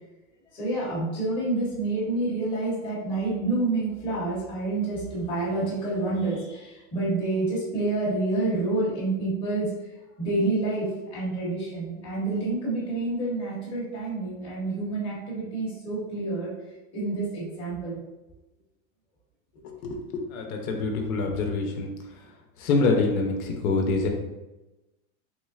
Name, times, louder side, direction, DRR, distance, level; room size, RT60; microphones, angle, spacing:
voice 1, 0.5-9.7 10.2-16.5 16.9-18.0, right 2 dB, 15° left, -8 dB, 0.8 m, -28 dB
voice 2, 19.6-20.0 20.3-21.9 22.6-24.1, left 3 dB, 75° left, 2 dB, 0.8 m, -25 dB
3.8 x 3.1 x 2.4 m, 1.0 s
supercardioid pair, 175°, 42 cm